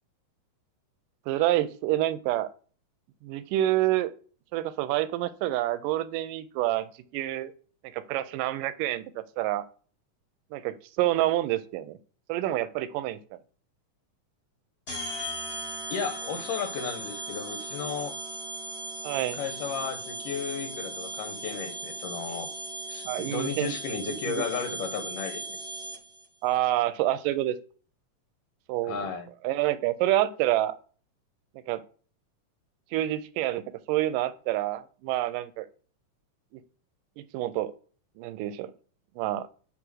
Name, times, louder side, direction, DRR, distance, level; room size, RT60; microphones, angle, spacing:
voice 1, 1.3-2.5 3.2-4.1 4.5-6.9 7.1-7.5 7.9-9.6 10.5-12.0 12.3-13.4 19.0-19.4 23.1-23.8 24.1-24.4 26.4-27.6 28.7-29.1 29.4-30.7 31.7-31.8 32.9-33.6 33.9-35.7 37.2-37.7 38.2-38.7 39.2-39.5, right 14 dB, 90° right, 12 dB, 2.2 m, -27 dB
sound 1, 14.9-26.3, right 2 dB, 50° left, 0.6 m, -37 dB
voice 2, 15.9-18.2 19.4-22.5 22.9-25.4 28.8-29.3, left 6 dB, 80° left, 8 dB, 2.7 m, -34 dB
7.2 x 3.2 x 6.2 m, 0.40 s
omnidirectional pair, 3.7 m